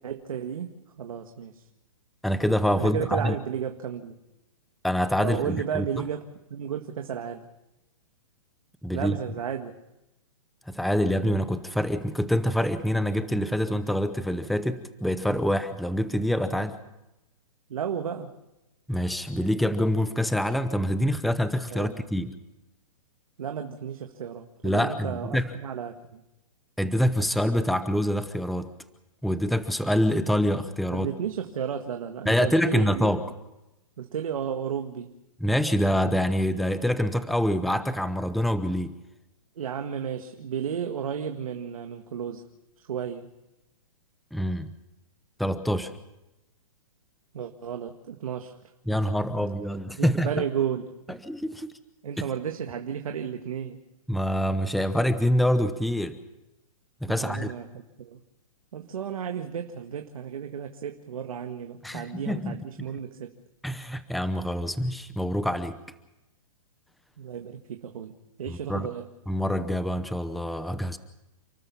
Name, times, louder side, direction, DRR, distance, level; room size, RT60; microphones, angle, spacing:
voice 1, 0.0-1.7 2.7-4.2 5.2-6.2 6.5-7.5 8.9-9.8 17.7-18.3 21.7-22.0 23.4-26.2 30.9-33.1 34.0-35.1 39.6-42.5 42.8-43.3 47.3-48.6 49.1-49.5 50.0-51.2 52.0-53.8 57.1-58.2 58.7-63.3 67.2-69.1, right 8 dB, 75° right, 5 dB, 1.8 m, -33 dB
voice 2, 2.2-3.3 4.8-5.8 8.8-9.2 10.7-16.8 18.9-22.3 24.6-25.5 26.8-28.7 29.2-31.1 32.3-33.2 35.4-38.9 44.3-44.7 45.4-45.9 48.9-50.3 51.1-51.7 52.2-52.3 54.1-56.2 57.0-57.5 61.8-62.6 63.6-65.8 68.5-68.9 69.3-71.0, equal, ahead, 12 dB, 0.8 m, -26 dB
29.5 x 13.0 x 7.1 m, 0.93 s
hypercardioid pair, 150°, 18 cm